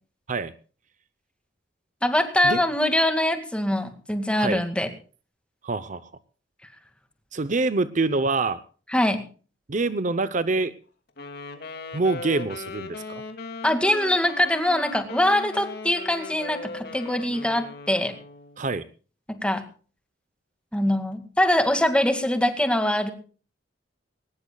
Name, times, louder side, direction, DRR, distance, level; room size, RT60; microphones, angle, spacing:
voice 1, 2.0-4.9 8.9-9.2 13.6-18.1 19.3-19.6 20.7-23.1, left 1 dB, 5° left, 7 dB, 2.1 m, -23 dB
voice 2, 5.6-6.1 7.3-8.6 9.7-10.7 11.9-13.2 18.6-18.9, right 3 dB, 45° right, 14 dB, 0.7 m, -25 dB
Wind instrument woodwind instrument, 11.2-18.6, left 3 dB, 60° left, 2.5 m, -38 dB
21.5 x 19.5 x 2.3 m, 0.38 s
head